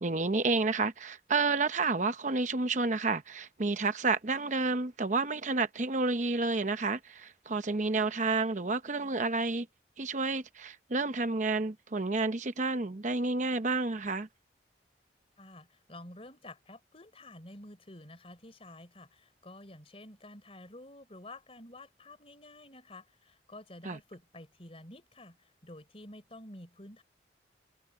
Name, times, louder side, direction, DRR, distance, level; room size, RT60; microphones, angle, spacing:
voice 1, 0.0-9.7 10.0-14.3 23.8-24.0, right 3 dB, 40° right, 0.8 m, -30 dB
voice 2, 15.4-25.4 25.6-27.0, left 1 dB, 30° left, 3.9 m, -50 dB
head